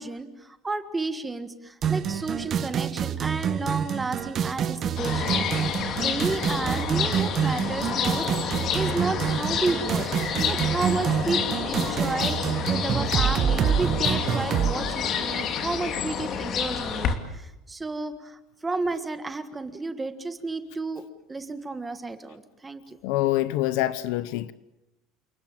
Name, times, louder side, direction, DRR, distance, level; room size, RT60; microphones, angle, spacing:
voice 1, 0.0-5.5 6.0-23.0, right 3 dB, 15° right, 1.5 m, -32 dB
sound 1, 1.8-14.7, right 8 dB, 35° right, 1.6 m, -27 dB
sound 2, 5.0-17.2, left 7 dB, 40° left, 2.8 m, -29 dB
voice 2, 23.0-24.5, left 16 dB, 75° left, 1.0 m, -25 dB
29.0 x 20.0 x 9.0 m
cardioid pair, 150°, 0 cm